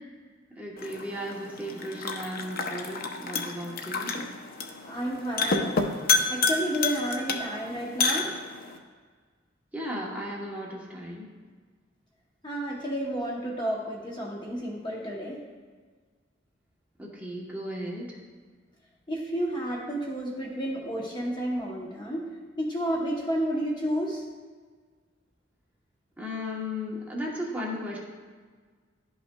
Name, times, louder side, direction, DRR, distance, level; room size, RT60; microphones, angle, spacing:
voice 1, 0.6-4.1 9.7-11.3 17.0-18.0 26.2-28.0, equal, 10° right, -4 dB, 1.0 m, -35 dB
sound 1, 0.8-8.8, left 4 dB, 50° left, 0.6 m, -30 dB
voice 2, 4.8-5.7 6.3-8.3 12.4-15.4 19.1-22.2 22.6-24.2, equal, 25° left, -2 dB, 0.8 m, -31 dB
11.5 x 5.5 x 2.2 m, 1.5 s
head